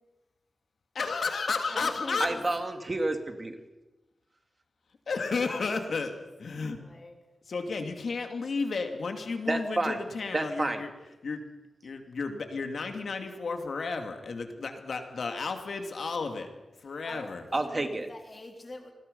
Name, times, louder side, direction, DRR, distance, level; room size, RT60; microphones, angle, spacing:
voice 1, 0.9-2.3 5.1-6.1 6.4-6.8 7.5-10.9 11.2-11.4 11.8-16.5 16.8-17.4, left 4 dB, 60° left, 5 dB, 2.7 m, -32 dB
voice 2, 1.7-2.5 5.2-6.1 6.8-7.2 16.8-17.3 17.6-18.9, left 2 dB, 30° left, 3 dB, 3.4 m, -44 dB
voice 3, 2.2-3.6 9.5-10.0 10.3-10.8 17.5-18.1, right 2 dB, 25° right, 6 dB, 2.0 m, -29 dB
27.5 x 20.5 x 5.6 m, 1.1 s
wide cardioid pair, 170°, 0 cm